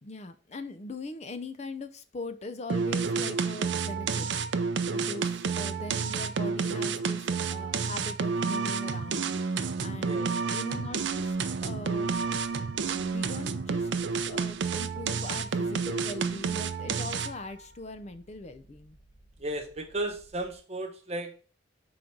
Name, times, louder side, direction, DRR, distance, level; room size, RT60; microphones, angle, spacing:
voice 1, 0.0-4.3 4.8-7.2 7.5-9.3 9.8-11.4 11.6-12.1 12.8-13.9 14.3-19.0, left 2 dB, 35° left, 11 dB, 0.5 m, -41 dB
sound 1, 2.7-17.5, right 5 dB, 75° right, 0.5 m, -30 dB
voice 2, 10.0-10.3 19.4-21.4, right 1 dB, 35° right, 3 dB, 1.1 m, -34 dB
sound 2, 10.8-20.5, right 1 dB, 15° right, 0.6 m, -59 dB
4.9 x 3.9 x 5.8 m, 0.40 s
head